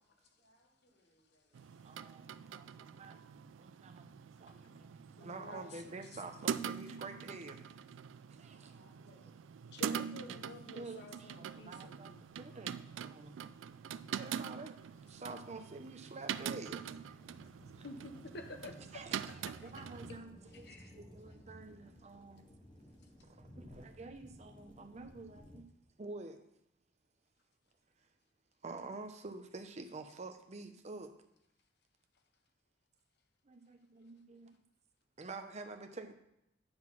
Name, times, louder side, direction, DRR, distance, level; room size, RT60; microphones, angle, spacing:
voice 1, 0.4-1.8 8.5-9.6, equal, 90° left, -4 dB, 3.1 m, -70 dB
sound 1, 1.5-20.2, right 8 dB, 80° right, 0.3 m, -44 dB
voice 2, 1.8-3.2 3.6-4.1 4.4-7.6 8.3-8.8 10.0-10.5 10.7-13.8 14.1-17.2 17.7-17.8 18.9-19.3 19.6-22.6 23.2-25.7 26.0-26.4 28.6-31.1 33.4-34.5 35.2-36.1, right 3 dB, 35° right, 6 dB, 0.7 m, -49 dB
voice 3, 5.2-6.2 9.7-12.2 17.8-19.0 19.6-19.7 20.6-21.0, left 2 dB, 60° left, 6 dB, 0.8 m, -50 dB
sound 2, 10.3-25.6, equal, 25° left, 1.0 m, -58 dB
9.6 x 3.9 x 6.0 m, 0.80 s
head